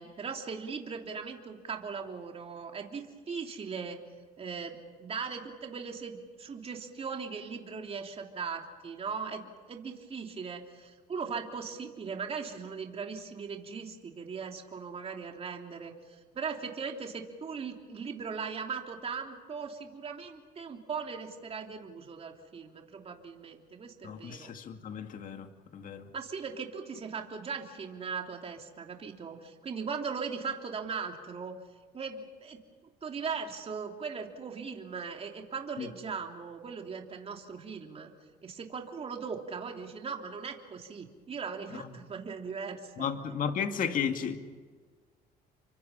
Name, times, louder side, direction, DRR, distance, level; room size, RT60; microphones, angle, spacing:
voice 1, 0.0-4.0 4.4-24.5 26.1-31.5 31.9-32.6 33.0-38.1 38.4-43.1, right 5 dB, 35° right, 3.2 m, -39 dB
voice 2, 24.0-26.1 35.8-35.9 41.8-41.9 43.0-44.4, left 7 dB, 55° left, 2.3 m, -34 dB
30.0 x 24.5 x 5.7 m
cardioid pair, 110°, 17 cm